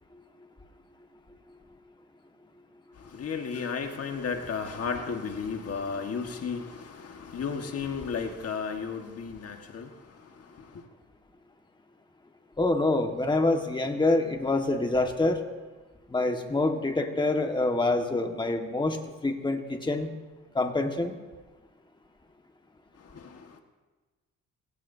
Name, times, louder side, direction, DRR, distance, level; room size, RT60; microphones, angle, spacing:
voice 1, 2.9-10.9 22.9-23.6, left 5 dB, 50° left, 1.7 m, -34 dB
voice 2, 12.6-15.4 16.1-19.0 19.2-20.1 20.5-21.1, left 2 dB, 15° left, 1.7 m, -26 dB
28.0 x 17.0 x 2.8 m
cardioid pair, 90°, 30 cm